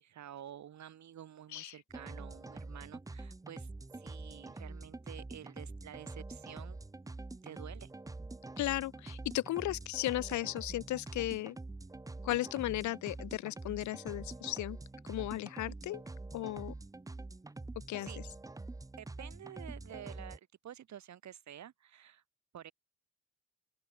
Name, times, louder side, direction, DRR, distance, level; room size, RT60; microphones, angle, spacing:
voice 1, 0.0-6.8 7.4-7.9 18.0-18.2 19.0-22.2 22.5-22.7, right 10 dB, 65° right, 8.0 m, -50 dB
sound 1, 1.9-20.4, right 2 dB, 10° right, 0.8 m, -46 dB
voice 2, 8.6-11.6 12.2-14.8 15.0-16.0 16.3-16.7 17.9-18.1, left 16 dB, 70° left, 0.6 m, -35 dB
open air
cardioid pair, 90°, 30 cm